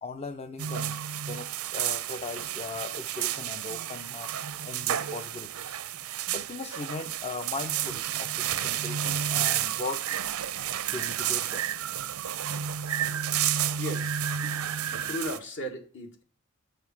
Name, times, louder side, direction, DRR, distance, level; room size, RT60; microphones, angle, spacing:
voice 1, 0.0-1.0 1.3-4.3 4.6-5.7 6.3-10.1 10.9-11.7, left 3 dB, 30° left, 0.5 m, -38 dB
sound 1, 0.6-15.4, right 10 dB, 90° right, 0.6 m, -31 dB
voice 2, 13.8-14.2 14.9-16.2, equal, 60° left, 1.6 m, -36 dB
6.7 x 6.3 x 5.8 m
head